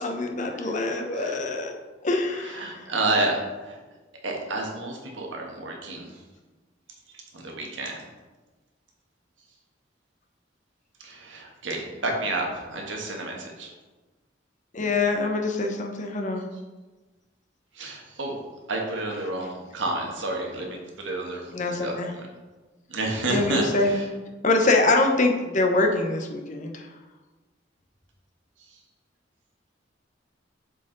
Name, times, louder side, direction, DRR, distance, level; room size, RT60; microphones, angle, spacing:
voice 1, 0.0-1.7 2.0-2.8 14.7-16.4 21.5-22.1 23.3-24.0 24.4-26.9, left 2 dB, 40° left, 3 dB, 0.8 m, -24 dB
voice 2, 2.3-3.8 4.2-6.2 7.3-8.0 11.0-13.7 17.7-18.4 18.7-22.3 22.9-24.1 28.7-28.8, right 2 dB, 85° right, 0 dB, 1.4 m, -30 dB
7.4 x 4.1 x 3.9 m, 1.2 s
head